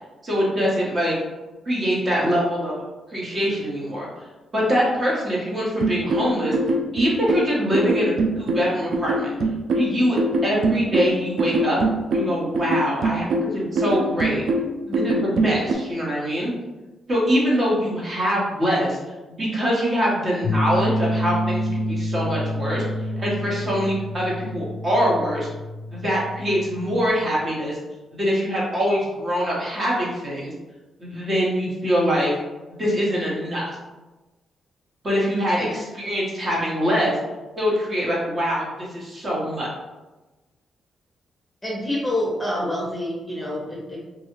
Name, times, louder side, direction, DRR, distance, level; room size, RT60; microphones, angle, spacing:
voice 1, 0.2-1.2 1.6-2.8 3.1-4.1 4.5-6.6 6.9-9.3 9.7-11.8 12.1-13.2 13.5-14.4 14.9-16.5 17.1-19.0 19.3-22.8 23.2-25.5 25.9-27.8 28.1-30.5 31.0-32.3 32.8-33.8 35.0-37.1 37.6-39.7, equal, 35° right, -5 dB, 1.0 m, -23 dB
sound 1, 5.8-15.7, right 2 dB, 70° right, 0.3 m, -23 dB
sound 2, 20.4-27.1, left 1 dB, 55° left, 0.5 m, -28 dB
voice 2, 41.6-44.0, left 1 dB, 10° left, -4 dB, 0.8 m, -27 dB
2.7 x 2.3 x 2.9 m, 1.1 s
cardioid pair, 90°, 0 cm